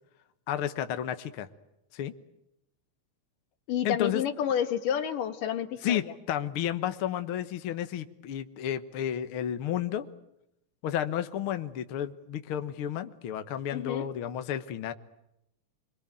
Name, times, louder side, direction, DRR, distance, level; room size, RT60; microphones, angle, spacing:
voice 1, 0.5-1.5 1.9-2.1 3.8-4.2 5.8-10.1 10.8-14.9, left 10 dB, 60° left, 9 dB, 1.6 m, -32 dB
voice 2, 3.7-6.0 13.7-14.1, left 9 dB, 80° left, 9 dB, 3.2 m, -29 dB
27.0 x 22.0 x 9.1 m, 0.81 s
omnidirectional pair, 3.8 m